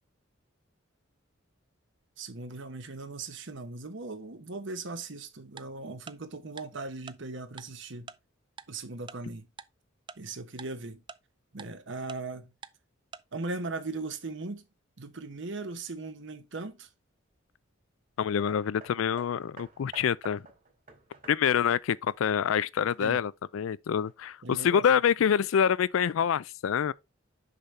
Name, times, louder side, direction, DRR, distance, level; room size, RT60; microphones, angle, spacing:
voice 1, 2.2-8.1 8.7-9.5 10.2-11.0 11.5-12.5 13.3-14.6 15.0-16.9 23.0-23.2 24.4-24.8, right 3 dB, 60° right, 1.0 m, -38 dB
Tick-tock, 5.6-5.7 6.1-6.2 6.6-6.7 7.1-7.2 7.6-7.7 8.1-8.2 8.6-8.7 9.1-9.2 9.6-9.7 10.1-10.2 10.6-10.7 11.1-11.2 11.6-11.7 12.1-12.2 12.6-12.7 13.1-13.2, right 6 dB, 25° right, 0.3 m, -43 dB
voice 2, 18.2-20.4 21.3-26.9, left 8 dB, 75° left, 0.4 m, -26 dB
Hammer, 18.5-23.2 24.0-24.1, right 3 dB, 40° right, 2.3 m, -52 dB
6.6 x 5.7 x 3.3 m
head